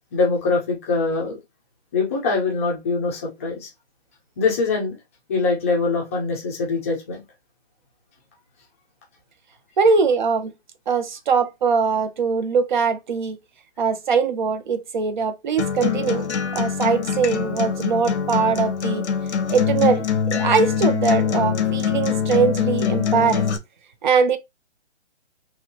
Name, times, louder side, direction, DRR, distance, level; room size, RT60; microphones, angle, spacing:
voice 1, 0.1-1.4 1.9-3.7 4.4-5.0 5.3-7.2, left 4 dB, 15° left, 0.5 m, -23 dB
voice 2, 9.8-10.5 10.9-13.4 13.8-16.3 16.5-19.0 19.5-23.5 24.0-24.4, right 5 dB, 45° right, 0.6 m, -21 dB
Acoustic guitar, 15.6-23.6, left 7 dB, 90° left, 0.8 m, -23 dB
3.0 x 2.7 x 2.7 m
hypercardioid pair, 160°, 33 cm